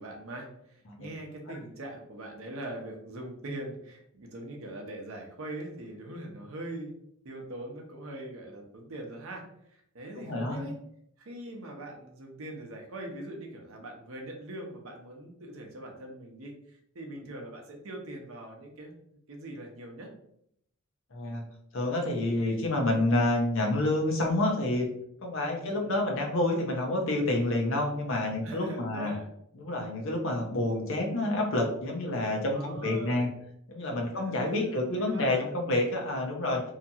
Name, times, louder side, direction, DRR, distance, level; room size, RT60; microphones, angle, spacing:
voice 1, 0.0-6.9 7.2-9.4 9.7-10.8 11.2-18.9 19.3-20.1 25.5-26.0 28.4-29.3 32.5-33.3 34.1-35.5, right 1 dB, 70° right, 1 dB, 0.7 m, -42 dB
voice 2, 10.2-10.6 21.1-21.4 21.7-24.9 25.2-29.1 29.5-33.3 33.7-36.6, left 1 dB, 65° left, 1 dB, 0.7 m, -28 dB
2.8 x 2.4 x 2.7 m, 0.72 s
head